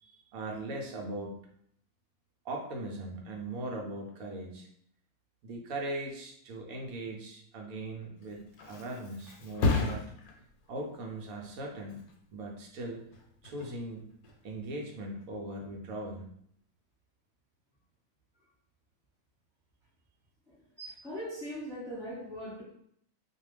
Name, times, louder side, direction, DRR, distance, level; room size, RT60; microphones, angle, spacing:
voice 1, 0.0-1.4 2.4-4.7 5.4-10.1 10.7-12.0 12.3-13.1 13.4-14.1 14.4-16.3, right 2 dB, 75° right, 0 dB, 1.0 m, -39 dB
Thump thud, 8.0-15.5 15.9-16.3, left 3 dB, 75° left, 1.0 m, -36 dB
voice 2, 20.5-22.6, equal, ahead, -8 dB, 1.2 m, -40 dB
2.4 x 2.3 x 3.1 m, 0.67 s
omnidirectional pair, 1.6 m